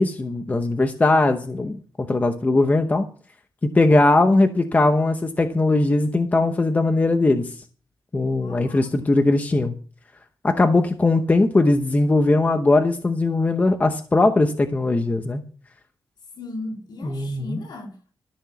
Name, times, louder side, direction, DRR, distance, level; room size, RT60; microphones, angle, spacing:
voice 1, 0.0-3.1 3.6-7.6 8.1-9.7 10.4-15.4 17.0-17.6, left 2 dB, 20° left, 0.8 m, -20 dB
voice 2, 8.4-9.3 16.3-18.2, left 2 dB, 65° left, 4.1 m, -37 dB
13.5 x 6.1 x 7.0 m
wide cardioid pair, 175°, 8 cm